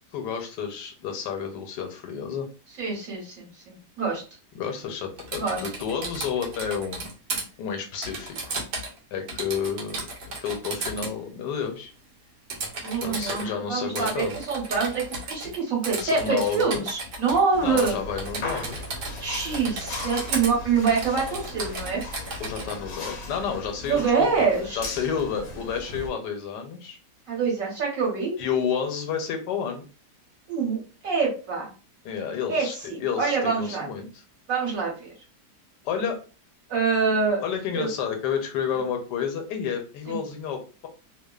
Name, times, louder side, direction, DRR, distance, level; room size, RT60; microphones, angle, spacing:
voice 1, 0.1-2.5 4.5-7.1 7.6-8.6 9.1-10.0 10.4-11.9 13.0-14.4 16.0-16.8 17.6-18.8 22.4-24.5 24.7-27.0 28.4-29.9 32.0-34.2 35.8-36.2 37.4-40.9, left 7 dB, 85° left, 5 dB, 1.2 m, -30 dB
voice 2, 2.8-4.2 5.4-5.6 12.8-18.0 19.2-22.0 23.9-24.8 27.3-28.3 30.5-31.7 32.5-33.9 34.5-35.1 36.7-37.4 37.7-37.9 40.1-40.2, right 5 dB, 55° right, -2 dB, 1.4 m, -25 dB
Typing, 5.2-7.4 8.0-9.0 9.3-11.1 12.5-13.4 14.0-15.6 15.8-17.4 17.8-17.9 18.2-19.3 19.5-20.5 20.9-22.8, right 3 dB, 80° right, 1.4 m, -34 dB
sound 1, 17.5-26.1, left 2 dB, 65° left, 0.8 m, -38 dB
3.1 x 2.1 x 2.3 m, 0.34 s
omnidirectional pair, 1.8 m